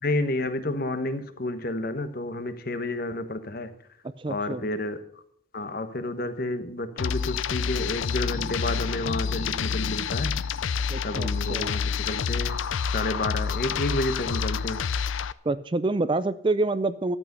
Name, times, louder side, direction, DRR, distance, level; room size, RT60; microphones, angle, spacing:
voice 1, 0.0-3.7 4.3-5.0 5.5-10.5 11.0-12.6 12.9-14.8, left 2 dB, 45° left, 10 dB, 1.1 m, -30 dB
voice 2, 4.2-4.7 10.9-11.7 15.4-17.2, right 2 dB, 25° right, 14 dB, 0.4 m, -27 dB
sound 1, 7.0-15.3, left 6 dB, 75° left, 0.5 m, -28 dB
12.5 x 8.3 x 6.6 m, 0.66 s
head